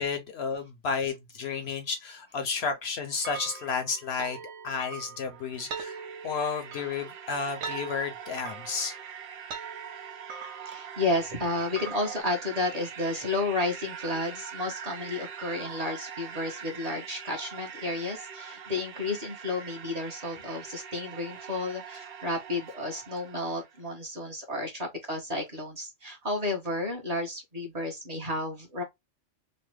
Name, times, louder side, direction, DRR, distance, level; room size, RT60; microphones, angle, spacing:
voice 1, 0.0-4.4 4.6-8.9, left 5 dB, 65° left, 0.8 m, -32 dB
sound 1, 3.2-12.2, right 5 dB, 80° right, 1.0 m, -42 dB
sound 2, 5.1-23.8, right 7 dB, 60° right, 0.7 m, -43 dB
voice 2, 10.7-28.8, left 2 dB, 35° right, 0.9 m, -32 dB
3.1 x 2.0 x 3.2 m
omnidirectional pair, 1.3 m